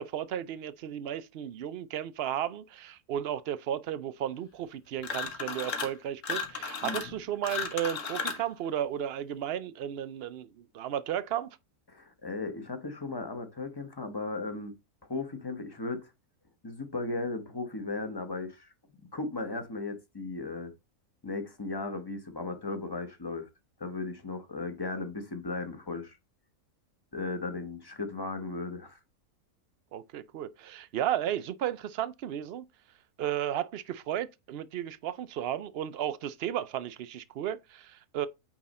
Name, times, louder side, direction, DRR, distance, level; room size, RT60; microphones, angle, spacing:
voice 1, 0.0-11.6 29.9-32.7 33.2-38.3, right 10 dB, 65° right, 0.6 m, -34 dB
sound 1, 5.0-6.0 6.2-8.5, left 5 dB, 60° left, 1.5 m, -34 dB
voice 2, 11.9-14.7 15.1-16.1 16.6-18.7 19.1-20.7 21.2-23.5 23.8-26.2 27.1-29.0, left 3 dB, 20° left, 1.0 m, -36 dB
8.9 x 3.6 x 4.2 m
omnidirectional pair, 1.6 m